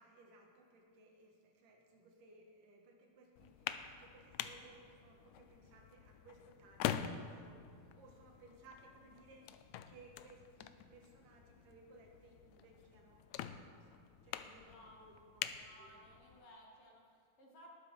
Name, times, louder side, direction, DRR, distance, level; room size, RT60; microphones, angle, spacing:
voice 1, 0.0-16.5, right 2 dB, 80° right, 1 dB, 3.1 m, -62 dB
sound 1, 3.4-16.4, left 10 dB, 90° left, 1.6 m, -46 dB
voice 2, 14.4-15.1 15.5-17.7, equal, 50° left, -1 dB, 2.2 m, -60 dB
19.0 x 8.4 x 5.3 m, 2.3 s
omnidirectional pair, 3.7 m